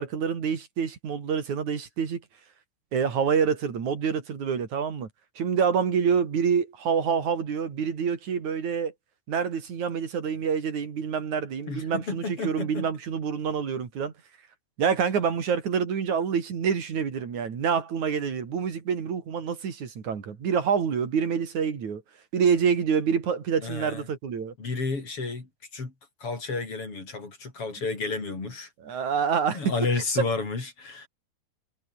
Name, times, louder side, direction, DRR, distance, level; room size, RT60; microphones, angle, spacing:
voice 1, 0.0-2.2 2.9-5.1 5.4-8.9 9.3-14.1 14.8-22.0 22.3-24.5 28.8-29.7, right 6 dB, 80° right, 4.5 m, -27 dB
voice 2, 11.7-12.9 23.6-24.0 24.6-25.9 26.2-28.7 29.5-31.1, left 3 dB, 50° left, 5.9 m, -31 dB
omnidirectional pair, 3.3 m